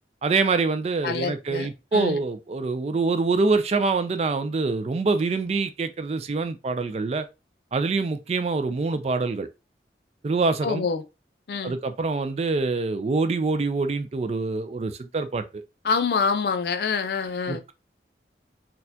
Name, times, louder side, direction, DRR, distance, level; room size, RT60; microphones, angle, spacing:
voice 1, 0.2-7.3 7.7-9.5 10.2-10.9 11.6-15.6 17.5-17.7, right 3 dB, 35° right, 0.3 m, -25 dB
voice 2, 1.0-2.2 10.6-11.0 11.5-11.7 15.8-17.6, left 5 dB, 60° left, 0.4 m, -26 dB
4.2 x 2.3 x 2.7 m
head